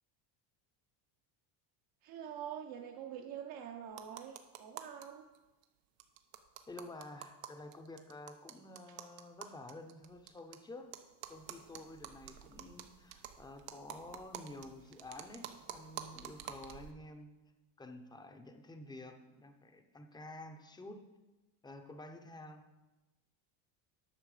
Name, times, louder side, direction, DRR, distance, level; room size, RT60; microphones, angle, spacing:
voice 1, 2.0-5.3, right 9 dB, 50° right, 3 dB, 0.8 m, -45 dB
sound 1, 3.9-5.1 5.3-5.4 5.6-5.7 6.0-10.6 10.9-16.9, right 10 dB, 90° right, 1.0 m, -49 dB
voice 2, 6.7-11.0 11.3-17.3 17.8-21.0 21.6-22.6, left 2 dB, 10° left, 6 dB, 0.7 m, -50 dB
10.0 x 6.3 x 4.9 m, 1.1 s
cardioid pair, 135°, 48 cm